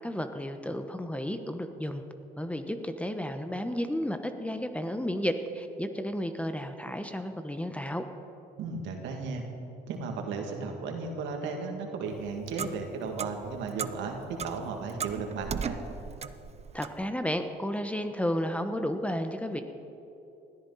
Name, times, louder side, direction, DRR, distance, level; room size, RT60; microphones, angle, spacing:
voice 1, 0.0-2.0 2.4-8.0 16.7-19.6, equal, 5° left, 7 dB, 1.1 m, -32 dB
voice 2, 8.6-9.4 9.9-15.8, right 4 dB, 75° right, 3 dB, 2.4 m, -35 dB
Clock, 12.0-17.1, right 6 dB, 35° right, 0.7 m, -38 dB
20.0 x 14.0 x 4.2 m, 2.9 s
supercardioid pair, 80°, 19 cm